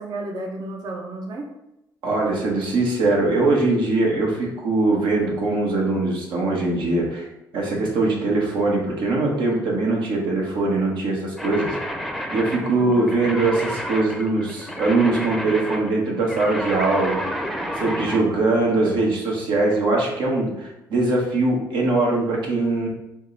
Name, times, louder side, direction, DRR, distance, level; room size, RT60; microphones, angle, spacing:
voice 1, 0.0-1.5 3.0-3.1 12.6-13.0, right 2 dB, 55° right, 1 dB, 0.8 m, -33 dB
voice 2, 2.0-7.3 7.5-11.7 12.3-17.2 17.8-22.9, right 2 dB, 80° right, -2 dB, 1.4 m, -21 dB
sound 1, 11.4-18.3, equal, ahead, 0.6 m, -30 dB
5.1 x 2.3 x 3.9 m, 0.88 s
cardioid pair, 80°, 8 cm